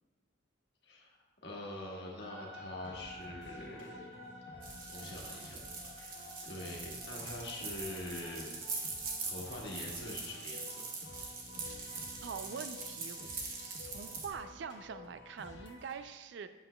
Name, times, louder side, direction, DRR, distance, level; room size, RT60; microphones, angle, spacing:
voice 1, 0.8-1.2 1.4-4.0 4.5-5.6 6.4-8.6 9.2-10.9, left 1 dB, 55° left, -2 dB, 1.4 m, -44 dB
sound 1, 2.2-14.5, left 1 dB, 25° right, 2.0 m, -55 dB
sound 2, 2.8-15.9, left 2 dB, 75° left, 1.1 m, -52 dB
sound 3, 4.6-14.3, right 4 dB, 45° right, 1.0 m, -43 dB
voice 2, 12.2-13.3 13.6-16.5, right 6 dB, 65° right, 10 dB, 0.4 m, -44 dB
7.7 x 7.2 x 2.2 m, 1.2 s
head